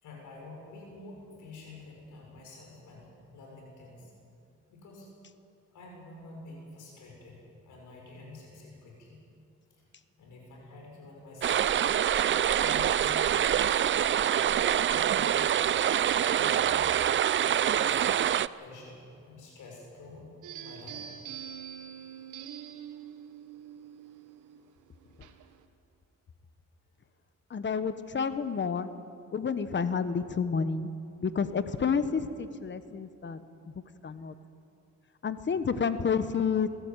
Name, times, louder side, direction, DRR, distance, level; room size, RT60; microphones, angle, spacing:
voice 1, 0.0-4.1 4.7-5.1 5.7-9.2 9.8-9.9 10.2-11.7 12.6-13.7 14.3-16.1 16.4-16.9 17.4-18.1 18.6-20.3 20.6-21.1 35.4-35.6, left 3 dB, 75° left, -1 dB, 6.7 m, -48 dB
sound 1, 11.4-18.5, right 10 dB, 40° right, 0.5 m, -25 dB
sound 2, 20.4-25.7, right 9 dB, 80° right, 1.4 m, -45 dB
voice 2, 27.5-28.9 29.3-30.9 31.2-33.4 34.0-34.3 35.2-36.7, left 6 dB, 40° left, 12 dB, 1.3 m, -29 dB
21.0 x 14.5 x 9.2 m, 2.5 s
cardioid pair, 90°, 30 cm